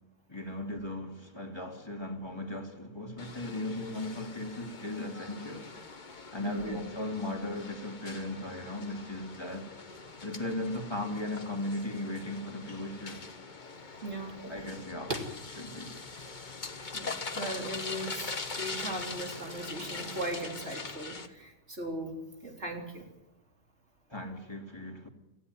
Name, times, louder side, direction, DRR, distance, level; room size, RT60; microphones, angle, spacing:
voice 1, 0.3-5.7 6.3-9.7 10.2-13.2 14.4-15.2 15.5-15.9 16.5-16.6 24.1-25.1, left 1 dB, 25° left, 2.6 m, -37 dB
sound 1, 3.2-21.3, left 4 dB, 45° left, 1.4 m, -42 dB
voice 2, 6.4-6.8 14.0-14.4 16.9-23.1, right 1 dB, 85° right, 4.1 m, -38 dB
sound 2, 14.3-15.4 16.0-20.4, right 2 dB, 40° right, 2.1 m, -45 dB
18.5 x 15.5 x 9.4 m
omnidirectional pair, 1.1 m